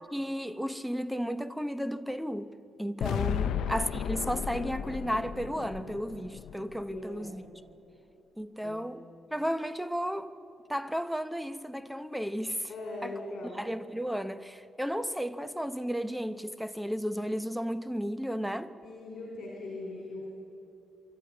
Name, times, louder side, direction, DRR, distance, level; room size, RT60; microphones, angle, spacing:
voice 1, 0.1-2.5 2.8-7.4 8.4-9.0 9.3-10.3 10.7-12.7 13.0-13.1 13.5-18.7, equal, ahead, 0.8 m, -33 dB
sound 1, 3.0-7.2, left 9 dB, 85° left, 0.6 m, -34 dB
voice 2, 3.3-3.6 6.9-7.4 8.6-8.8 12.7-13.6 18.8-20.3, left 2 dB, 60° left, 4.2 m, -40 dB
24.0 x 13.5 x 9.4 m
cardioid pair, 100°, 0 cm